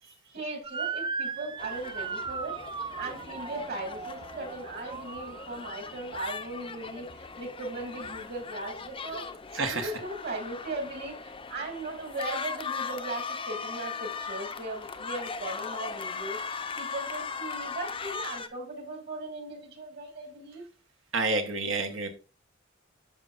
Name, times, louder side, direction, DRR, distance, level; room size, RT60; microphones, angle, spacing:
voice 1, 0.0-2.6 2.9-9.3 9.7-16.4 16.8-20.6, right 2 dB, 55° right, 3 dB, 2.5 m, -38 dB
Motor vehicle (road) / Siren, 0.6-5.9, right 5 dB, 25° right, 0.3 m, -37 dB
sound 1, 1.6-18.5, left 5 dB, 25° left, 0.6 m, -39 dB
voice 2, 9.5-9.9 21.1-22.1, right 3 dB, 75° right, 5 dB, 1.2 m, -29 dB
11.0 x 5.5 x 2.5 m, 0.34 s
head